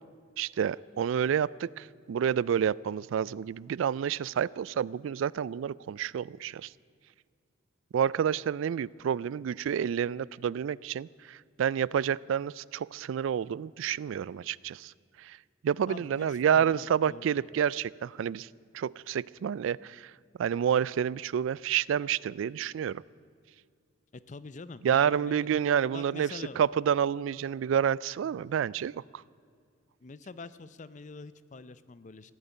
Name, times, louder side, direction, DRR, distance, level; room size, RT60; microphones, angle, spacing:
voice 1, 0.4-6.7 7.9-14.9 15.2-15.4 15.6-18.5 18.7-20.1 20.4-23.0 24.8-29.2, right 8 dB, 80° right, 23 dB, 0.3 m, -29 dB
voice 2, 15.9-17.5 24.1-25.5 25.9-26.6 30.0-32.3, left 3 dB, 35° left, 15 dB, 0.5 m, -45 dB
15.5 x 9.0 x 9.7 m, 2.2 s
head